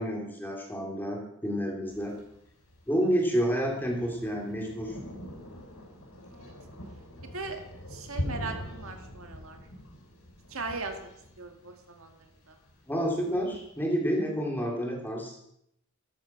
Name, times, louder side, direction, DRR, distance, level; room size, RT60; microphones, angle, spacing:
voice 1, 0.0-2.1 2.9-4.9 12.9-15.3, equal, 10° left, -1 dB, 3.4 m, -29 dB
Thunder, 1.9-13.8, equal, 70° left, 6.6 m, -43 dB
voice 2, 7.9-9.6 10.5-11.1 11.4-12.6, right 3 dB, 70° right, 4 dB, 2.1 m, -39 dB
14.0 x 12.5 x 6.0 m, 0.77 s
head